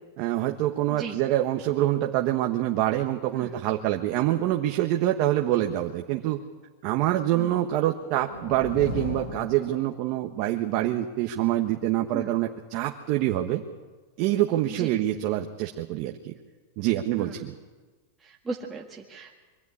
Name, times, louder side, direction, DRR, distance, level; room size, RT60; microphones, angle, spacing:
voice 1, 0.2-6.4 6.8-13.6 14.2-16.3 16.8-17.5, right 14 dB, 50° right, 4 dB, 1.2 m, -26 dB
voice 2, 0.9-1.2 3.3-3.6 7.3-7.5 12.1-12.4 14.6-14.9 17.1-17.5 18.2-19.4, right 4 dB, 15° right, -3 dB, 1.7 m, -37 dB
sound 1, 7.6-10.4, left 3 dB, 55° left, 6.7 m, -37 dB
23.0 x 13.5 x 9.8 m, 1.3 s
supercardioid pair, 145°, 0 cm